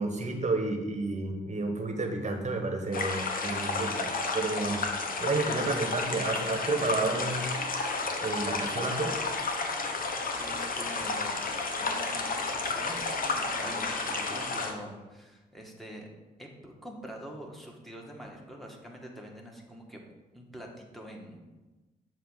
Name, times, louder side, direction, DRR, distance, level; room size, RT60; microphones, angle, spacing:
voice 1, 0.0-4.1 4.3-4.8 5.2-7.5 8.2-9.1, right 3 dB, 40° right, 4 dB, 1.3 m, -31 dB
sound 1, 2.9-14.7, left 3 dB, 50° left, 0.9 m, -32 dB
voice 2, 10.4-11.4 11.7-16.1 16.4-20.0 20.3-21.4, equal, ahead, 0 dB, 1.6 m, -45 dB
7.2 x 2.8 x 5.7 m, 1.1 s
hypercardioid pair, 45°, 18 cm